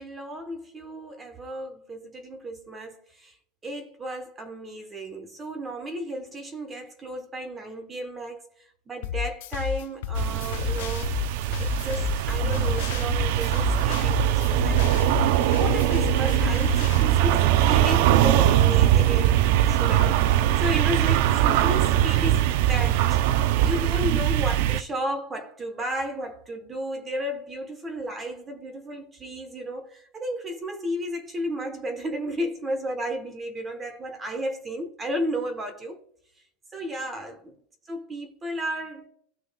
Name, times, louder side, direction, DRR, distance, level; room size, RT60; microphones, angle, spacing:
voice 1, 0.0-3.3 3.6-11.1 11.6-23.2 23.6-36.0 36.7-37.6 37.9-39.1, equal, 15° right, 1.1 m, -33 dB
sound 1, 9.0-17.0, left 12 dB, 65° left, 0.5 m, -31 dB
sound 2, 10.2-24.8, right 12 dB, 55° right, 0.4 m, -21 dB
16.5 x 6.2 x 2.3 m
supercardioid pair, 170°, 0 cm